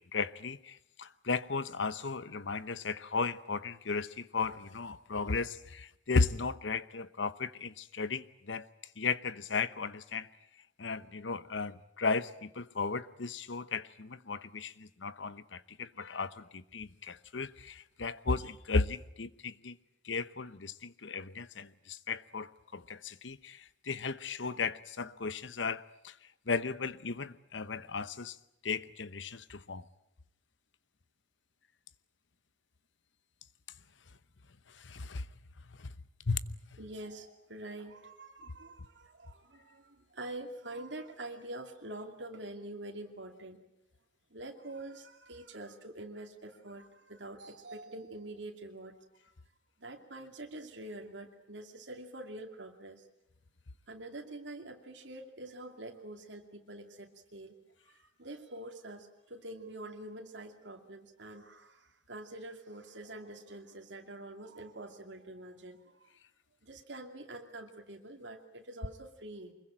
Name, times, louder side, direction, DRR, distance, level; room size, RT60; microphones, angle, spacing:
voice 1, 0.0-8.7 9.0-10.3 10.8-19.8 20.0-26.1 26.5-28.4 28.6-29.9 34.7-35.3 35.8-35.9 36.3-36.4, left 4 dB, 90° left, 1.0 m, -35 dB
voice 2, 36.8-43.6 44.3-49.0 49.8-53.0 53.9-57.5 57.8-66.1 66.6-69.5, right 1 dB, 80° right, 2.6 m, -46 dB
24.5 x 22.0 x 8.9 m
head